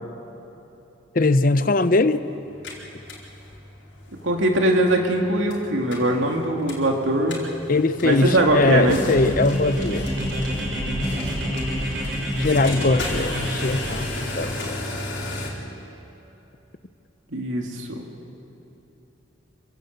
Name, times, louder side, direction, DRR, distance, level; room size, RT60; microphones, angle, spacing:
voice 1, 1.1-2.3 7.7-10.1 12.3-14.8, left 2 dB, 45° left, 0.7 m, -21 dB
sound 1, 2.4-15.5, left 1 dB, 60° left, 4.4 m, -35 dB
voice 2, 4.2-7.4 8.0-9.0 17.3-17.9, right 1 dB, 80° right, 2.5 m, -21 dB
sound 2, 8.2-14.5, equal, 15° right, 4.4 m, -33 dB
sound 3, 8.4-14.4, equal, 65° right, 6.1 m, -29 dB
25.5 x 17.0 x 8.2 m
head